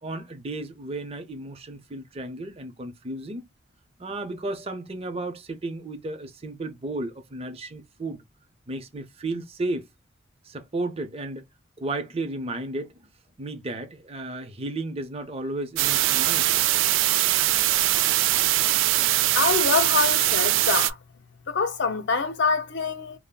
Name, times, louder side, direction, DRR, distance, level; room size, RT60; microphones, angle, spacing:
voice 1, 0.0-3.5 4.0-8.2 8.7-9.8 10.5-11.4 11.8-12.9 13.4-16.5, right 2 dB, 30° right, 0.7 m, -33 dB
sound 1, 15.8-20.9, right 15 dB, 65° right, 0.3 m, -22 dB
voice 2, 19.3-21.0 21.5-23.2, left 5 dB, 60° left, 0.7 m, -25 dB
3.6 x 2.1 x 2.3 m
head